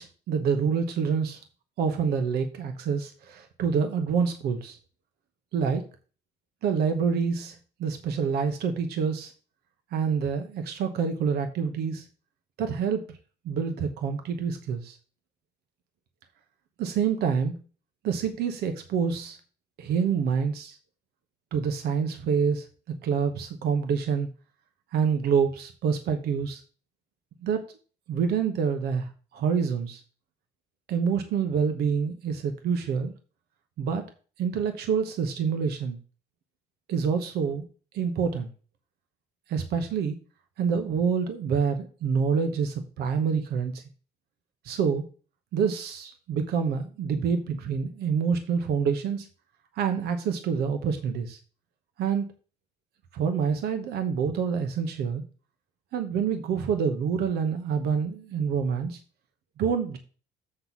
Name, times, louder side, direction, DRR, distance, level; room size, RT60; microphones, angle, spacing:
voice 1, 0.0-1.4 1.8-4.8 5.5-5.8 6.6-9.3 9.9-12.1 12.6-13.0 13.4-15.0 16.8-17.6 18.0-19.4 19.8-20.8 21.5-22.7 23.0-24.3 24.9-26.6 27.4-27.6 28.1-30.0 30.9-33.1 33.8-34.0 34.4-36.0 36.9-37.6 37.9-38.5 39.5-40.2 40.6-43.8 44.6-45.0 45.5-49.3 49.8-51.4 52.0-52.3 53.1-55.2 55.9-59.0 59.6-60.0, right 6 dB, 70° right, 7 dB, 1.0 m, -27 dB
7.7 x 4.0 x 5.9 m, 0.37 s
cardioid pair, 110°, 17 cm